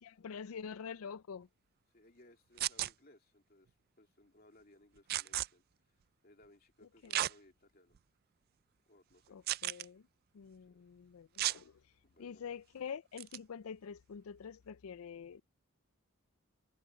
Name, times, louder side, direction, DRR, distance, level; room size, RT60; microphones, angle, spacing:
voice 1, 0.0-1.5 7.0-7.3 9.3-10.0 10.3-11.8 12.2-15.4, left 6 dB, 80° left, 0.4 m, -46 dB
voice 2, 1.9-5.6 6.2-8.0 8.9-9.4 10.7-10.8 12.0-12.4, left 1 dB, 45° left, 2.7 m, -64 dB
sound 1, 2.6-2.9 5.1-5.5 7.1-7.3 7.9-8.0 9.5-9.8 11.4-11.6 13.2-13.4, right 14 dB, 45° right, 0.3 m, -34 dB
head